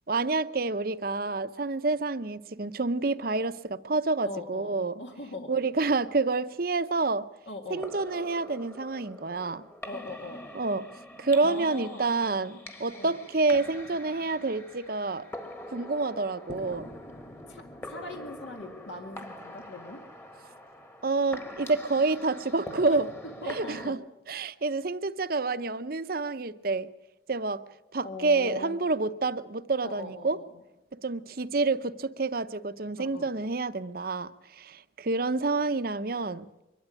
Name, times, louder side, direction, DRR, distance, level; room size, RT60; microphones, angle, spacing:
voice 1, 0.1-4.9 5.5-7.3 7.7-9.6 10.5-10.8 11.2-15.2 15.7-16.9 21.0-23.1 23.5-24.0 24.3-26.9 27.3-27.6 27.9-30.4 30.9-36.5, right 3 dB, 50° right, 0.7 m, -28 dB
voice 2, 4.2-5.6 7.5-7.9 9.8-10.5 11.4-12.1 13.0-13.2 17.5-20.0 22.9-23.0 23.4-24.0 28.0-28.8 29.8-30.6 33.0-33.3, left 2 dB, 75° left, 2.1 m, -41 dB
sound 1, 7.7-23.9, left 1 dB, 10° left, 1.4 m, -44 dB
23.5 x 12.5 x 9.9 m
head